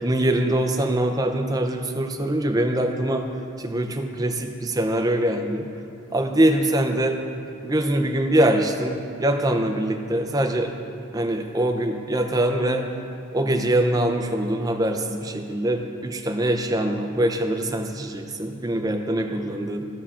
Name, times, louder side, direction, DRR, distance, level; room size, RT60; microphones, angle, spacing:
voice 1, 0.0-3.3 3.6-5.7 6.1-7.2 7.6-10.7 11.1-12.9 13.3-19.8, right 1 dB, 15° right, 4 dB, 0.5 m, -23 dB
15.5 x 5.5 x 2.5 m, 2.7 s
head